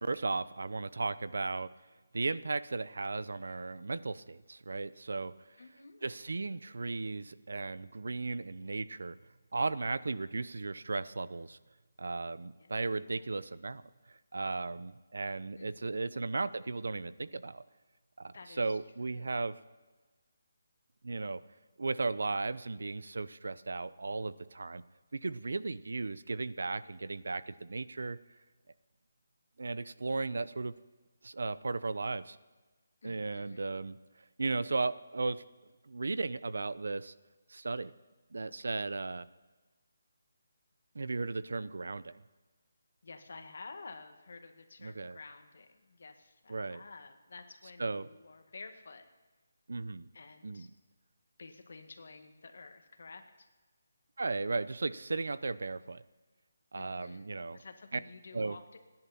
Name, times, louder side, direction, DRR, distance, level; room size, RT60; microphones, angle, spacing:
voice 1, 0.0-1.7 2.1-5.3 6.0-9.2 9.5-11.6 12.0-13.8 14.3-17.6 18.2-19.5 21.0-21.4 21.8-24.8 25.1-28.2 29.6-30.7 31.2-32.4 33.0-34.0 34.4-35.4 35.9-37.1 37.5-37.9 38.3-39.2 40.9-42.2 44.8-45.2 46.5-46.8 47.8-48.1 49.7-50.1 50.4-50.7 54.2-56.0 56.7-57.6 57.9-58.0 58.3-58.6, right 3 dB, 75° right, 16 dB, 0.7 m, -35 dB
voice 2, 5.6-6.3 12.6-13.3 15.5-16.3 18.3-19.4 33.0-33.8 43.0-49.1 50.1-50.7 51.4-53.5 56.7-58.8, left 4 dB, 60° left, 6 dB, 1.9 m, -52 dB
29.5 x 11.0 x 4.3 m, 1.3 s
hypercardioid pair, 175°, 0 cm